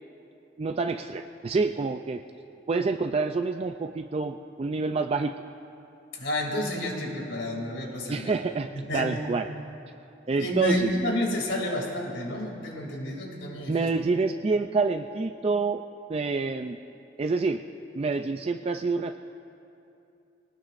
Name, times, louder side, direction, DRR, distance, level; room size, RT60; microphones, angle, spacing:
voice 1, 0.6-2.2 2.7-5.3 8.1-9.5 10.3-10.9 13.7-15.8 16.1-16.8 17.2-17.6 17.9-19.2, right 4 dB, 30° right, 6 dB, 0.3 m, -27 dB
voice 2, 6.1-8.3 8.7-9.2 10.4-13.9, left 1 dB, 75° left, 0 dB, 2.7 m, -30 dB
24.0 x 19.0 x 2.5 m, 2.7 s
head